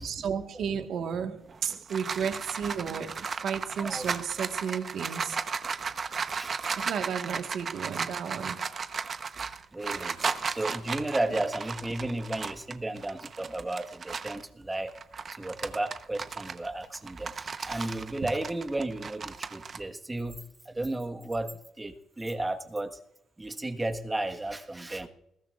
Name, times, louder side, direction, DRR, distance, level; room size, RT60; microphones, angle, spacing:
voice 1, 0.0-5.4 6.7-8.6, right 7 dB, 70° right, 1.5 m, -33 dB
sound 1, 1.5-14.4 14.9-19.8, right 5 dB, 45° right, 0.9 m, -35 dB
voice 2, 3.8-4.1 6.3-6.5 9.7-10.2 10.5-14.9 15.3-20.4 20.6-21.5 21.8-23.0 23.4-25.1, right 2 dB, 15° right, 1.4 m, -33 dB
20.5 x 15.0 x 2.5 m
cardioid pair, 90°, 0 cm